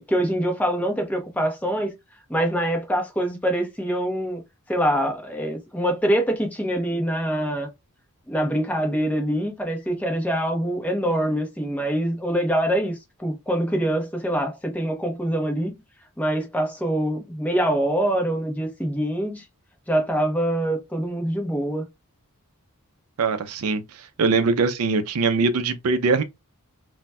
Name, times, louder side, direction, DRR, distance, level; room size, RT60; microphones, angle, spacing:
voice 1, 0.0-1.9 2.3-4.4 4.7-7.7 8.3-15.7 16.2-19.4 19.9-21.8, right 1 dB, 5° left, 0.7 m, -24 dB
voice 2, 23.2-26.2, right 4 dB, 75° right, 0.5 m, -22 dB
4.0 x 2.1 x 2.2 m
head